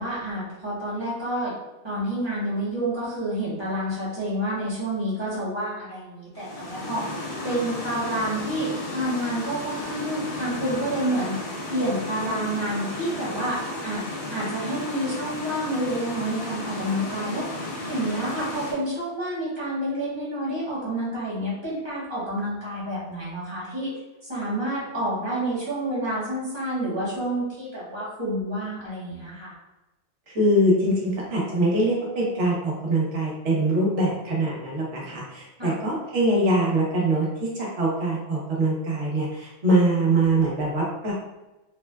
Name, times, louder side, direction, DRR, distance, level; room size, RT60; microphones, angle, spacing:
voice 1, 0.0-1.5 1.8-7.0 7.4-14.0 14.3-17.5 17.9-23.9 24.3-29.5 35.6-35.7, right 1 dB, 25° right, -8 dB, 1.1 m, -29 dB
sound 1, 6.4-18.7, left 1 dB, 75° left, 1.2 m, -34 dB
voice 2, 30.3-41.1, right 1 dB, 80° right, -4 dB, 1.2 m, -23 dB
3.7 x 2.2 x 2.2 m, 1.0 s
omnidirectional pair, 1.2 m